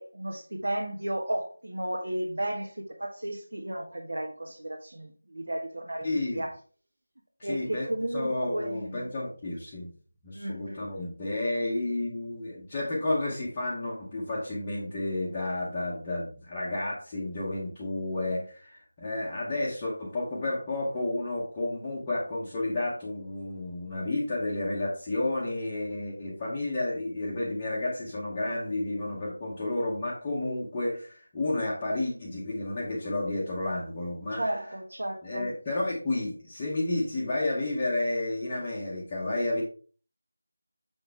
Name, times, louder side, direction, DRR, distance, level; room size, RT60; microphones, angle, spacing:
voice 1, 0.0-6.5 7.4-9.1 10.3-10.8 34.3-35.5, right 1 dB, 80° right, 0 dB, 1.5 m, -34 dB
voice 2, 6.0-6.4 7.4-9.9 10.2-34.4 35.2-39.6, left 2 dB, 10° left, -8 dB, 0.8 m, -31 dB
6.5 x 6.2 x 3.4 m, 0.41 s
figure-of-eight pair, 180°, 0 cm